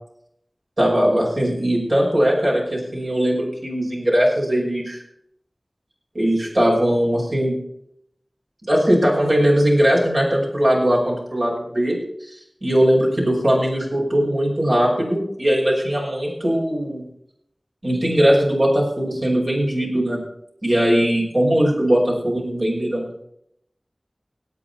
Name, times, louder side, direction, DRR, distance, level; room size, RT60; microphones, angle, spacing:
voice 1, 0.8-5.0 6.1-7.6 8.7-12.0 12.6-17.0 17.8-20.2 20.6-23.2, equal, 65° right, -3 dB, 5.6 m, -19 dB
18.0 x 8.6 x 4.3 m, 0.73 s
wide cardioid pair, 40°, 0 cm